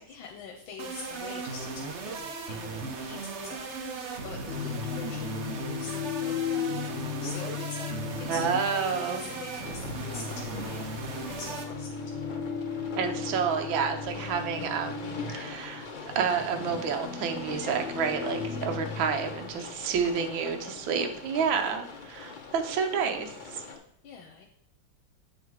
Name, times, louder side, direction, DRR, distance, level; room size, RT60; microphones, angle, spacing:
voice 1, 0.1-8.4 8.7-10.8 11.3-12.3 14.1-14.4 18.5-19.1 24.0-24.5, left 5 dB, 85° left, 1 dB, 1.6 m, -45 dB
sound 1, 0.8-11.7, right 4 dB, 60° right, 0.7 m, -37 dB
sound 2, 4.5-19.6, left 7 dB, 40° left, 1.2 m, -37 dB
voice 2, 8.3-9.2 13.0-15.9 16.1-23.6, right 6 dB, 75° right, 5 dB, 1.5 m, -29 dB
sound 3, 9.6-23.8, left 4 dB, 70° left, 0.4 m, -43 dB
8.3 x 4.0 x 4.7 m, 0.70 s
omnidirectional pair, 2.2 m